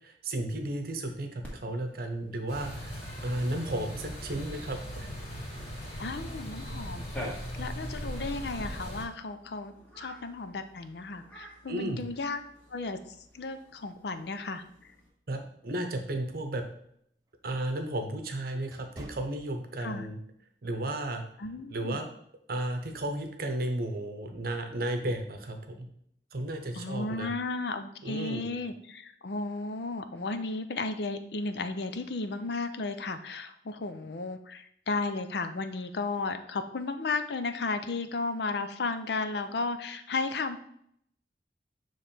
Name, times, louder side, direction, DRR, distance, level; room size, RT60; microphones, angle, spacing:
voice 1, 0.0-5.1 11.7-12.0 15.3-16.6 17.4-20.2 20.6-21.2 21.7-22.1 22.5-25.9 26.3-27.3 28.0-28.7, right 1 dB, 55° right, 5 dB, 0.8 m, -34 dB
Cat, 1.4-15.1, equal, 10° left, 1.5 m, -49 dB
sound 1, 2.5-9.0, equal, 40° left, 2.3 m, -39 dB
voice 2, 6.0-7.0 7.6-12.4 12.7-13.0 13.3-14.6 19.8-20.1 21.4-22.0 26.7-40.6, left 3 dB, 65° left, 9 dB, 0.5 m, -34 dB
sound 2, 16.8-20.2 20.6-20.8 21.4-21.7, right 1 dB, 20° right, 0.7 m, -51 dB
6.9 x 3.2 x 4.3 m, 0.69 s
head